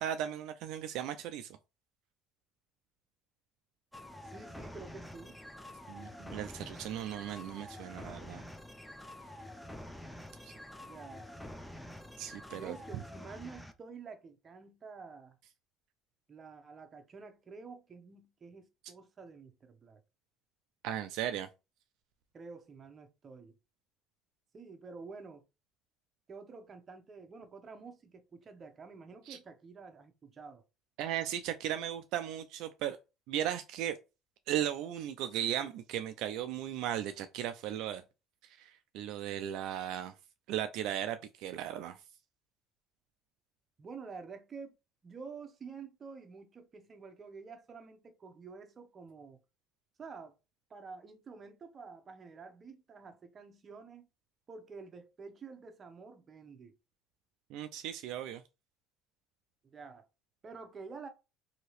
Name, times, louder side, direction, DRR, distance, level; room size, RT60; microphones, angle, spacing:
voice 1, 0.0-1.5 5.9-8.4 10.4-10.5 12.2-12.7 20.8-21.5 29.3-29.4 31.0-33.0 33.3-34.0 34.5-38.0 38.6-40.1 40.5-42.0 57.5-58.4, right 11 dB, 70° right, 0.3 m, -36 dB
sound 1, 3.9-13.7, left 1 dB, 5° left, 0.4 m, -47 dB
voice 2, 4.2-5.4 10.8-11.3 12.5-15.4 16.3-20.0 22.3-23.5 24.5-25.4 26.3-30.6 43.8-44.8 45.0-49.4 50.0-50.3 50.7-54.1 54.5-56.7 59.6-60.1 60.4-61.1, right 4 dB, 35° right, 0.8 m, -49 dB
2.8 x 2.8 x 3.0 m
supercardioid pair, 105°, 0 cm